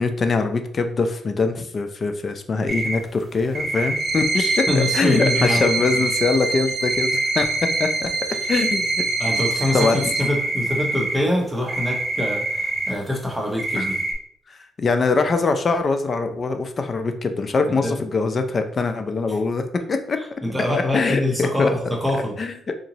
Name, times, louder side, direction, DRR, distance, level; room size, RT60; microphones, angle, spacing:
voice 1, 0.0-8.1 8.5-8.9 9.7-10.0 13.8-13.9 14.5-20.2 20.7-21.7 22.1-22.7, left 4 dB, 40° left, 8 dB, 0.5 m, -23 dB
sound 1, 2.7-3.0 3.5-6.4 6.7-8.1 8.4-13.0 13.4-14.1, right 2 dB, 35° right, 1.0 m, -26 dB
sound 2, 4.0-10.2, right 3 dB, 55° right, 0.6 m, -26 dB
voice 2, 4.7-6.1 9.2-13.9 17.7-17.9 20.2-22.3, left 1 dB, 5° right, -1 dB, 1.1 m, -24 dB
3.8 x 2.7 x 3.0 m, 0.66 s
cardioid pair, 90°, 0 cm